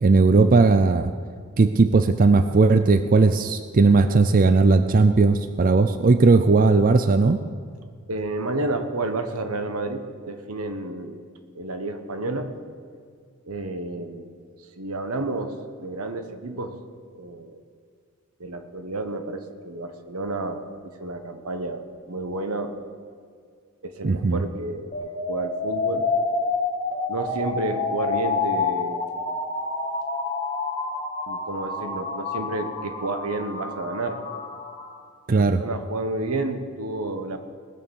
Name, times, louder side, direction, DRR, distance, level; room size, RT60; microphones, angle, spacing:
voice 1, 0.0-1.1 1.6-7.4 24.0-24.4 35.3-35.6, right 3 dB, 40° right, 10 dB, 0.4 m, -17 dB
voice 2, 8.1-11.2 11.5-12.6 13.4-14.3 14.8-16.8 17.1-17.6 18.4-22.8 23.8-26.1 27.1-29.1 31.3-34.2 35.3-37.4, right 2 dB, 85° right, 8 dB, 1.2 m, -30 dB
sound 1, 24.9-34.9, left 3 dB, 30° left, 2.0 m, -28 dB
19.5 x 6.8 x 7.1 m, 2.1 s
head